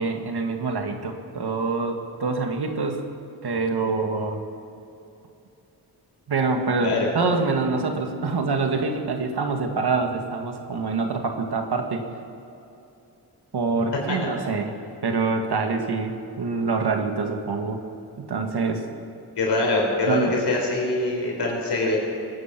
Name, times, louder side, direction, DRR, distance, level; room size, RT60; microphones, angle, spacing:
voice 1, 0.0-3.0 3.4-4.4 6.3-12.0 13.5-14.7 15.0-17.8 18.2-18.8 20.1-20.4, right 4 dB, 70° right, 4 dB, 1.9 m, -25 dB
voice 2, 19.4-22.0, left 2 dB, 80° left, -1 dB, 4.6 m, -23 dB
23.5 x 9.8 x 6.0 m, 2.7 s
cardioid pair, 55°, 40 cm